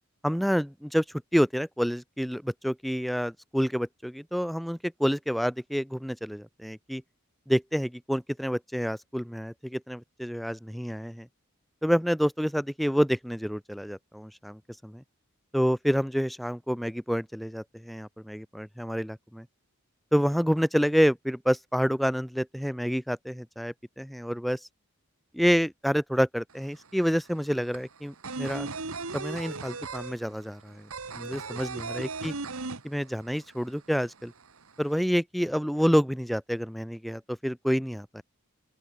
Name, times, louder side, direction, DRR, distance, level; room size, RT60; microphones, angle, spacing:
voice 1, 0.2-1.0 1.3-7.0 7.5-11.3 11.8-15.0 15.5-19.4 20.1-24.6 25.3-28.7 29.1-30.9 31.1-32.3 32.8-34.3 34.8-38.2, equal, ahead, 3.4 m, -28 dB
sound 1, 26.5-26.6 26.8-33.4 33.7-33.8 34.1-34.9, right 4 dB, 85° right, 1.9 m, -36 dB
open air
head